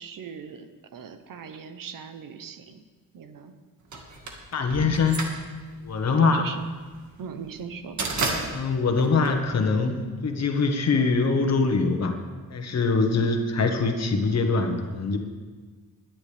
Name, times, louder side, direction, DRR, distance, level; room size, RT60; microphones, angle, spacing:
voice 1, 0.0-2.8 3.1-3.5 6.1-6.6 7.2-8.0, right 6 dB, 75° right, 8 dB, 1.0 m, -39 dB
sound 1, 3.9-10.1, right 3 dB, 60° right, 1.9 m, -32 dB
voice 2, 4.5-5.3 5.8-6.4 8.5-12.2 12.5-15.2, left 4 dB, 50° left, 4 dB, 1.5 m, -23 dB
19.5 x 10.5 x 3.5 m, 1.4 s
wide cardioid pair, 140°, 33 cm